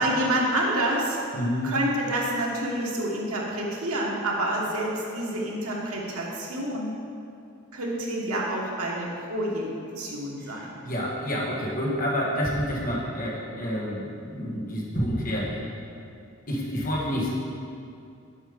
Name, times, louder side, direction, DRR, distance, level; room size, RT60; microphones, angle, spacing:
voice 1, 0.0-1.2 1.6-6.9 7.7-9.7 10.0-10.7, right 1 dB, 90° right, -3 dB, 1.4 m, -28 dB
voice 2, 1.3-1.7 10.4-15.6 16.5-17.3, equal, 40° left, -4 dB, 1.4 m, -29 dB
7.2 x 5.5 x 5.1 m, 2.5 s
head